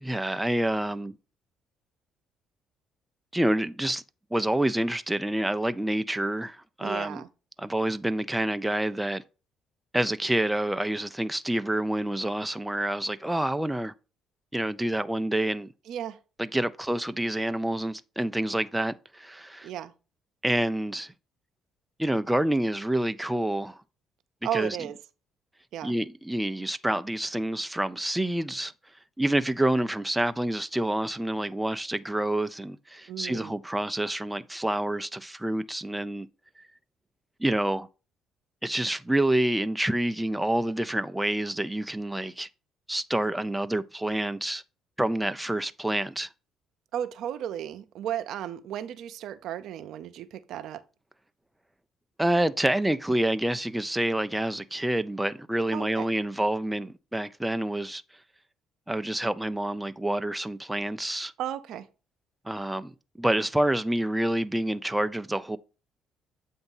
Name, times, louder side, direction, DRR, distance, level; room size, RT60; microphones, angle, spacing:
voice 1, 0.0-1.1 3.3-4.0 4.3-7.2 7.6-9.2 9.9-13.9 14.5-15.7 16.4-19.7 20.4-21.1 22.0-23.8 24.5-24.8 25.8-28.7 29.2-36.3 37.4-37.9 38.6-42.5 42.9-44.6 45.0-46.3 52.2-58.0 58.9-61.3 62.5-62.9 63.2-65.6, right 1 dB, 5° right, 0.4 m, -28 dB
voice 2, 6.8-7.3 15.9-16.2 19.6-19.9 24.4-25.0 25.7-25.9 33.1-33.5 46.9-50.8 55.7-56.1 61.4-61.9, right 10 dB, 70° right, 0.5 m, -34 dB
7.9 x 2.7 x 5.4 m
supercardioid pair, 75°, 0 cm